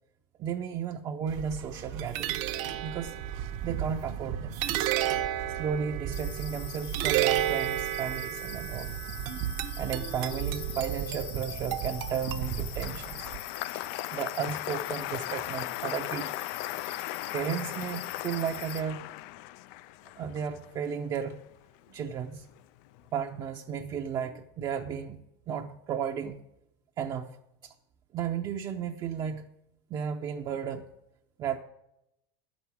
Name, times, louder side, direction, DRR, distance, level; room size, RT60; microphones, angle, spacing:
voice 1, 0.4-2.4 2.8-3.1 3.6-4.5 5.5-8.9 9.8-13.3 13.7-13.8 14.1-16.3 17.3-19.1 20.2-21.4 21.9-22.5 23.1-26.4 27.0-27.4 27.6-27.7 28.1-29.5 29.9-30.9 31.4-31.6, right 7 dB, 30° right, 2 dB, 0.6 m, -34 dB
sound 1, 1.3-13.4, right 12 dB, 55° right, 0.9 m, -32 dB
sound 2, 6.1-18.8, left 11 dB, 80° left, 0.7 m, -44 dB
Applause, 11.8-22.2 22.5-23.1, left 16 dB, 55° left, 0.4 m, -38 dB
11.5 x 6.1 x 8.4 m, 0.85 s
supercardioid pair, 145°, 13 cm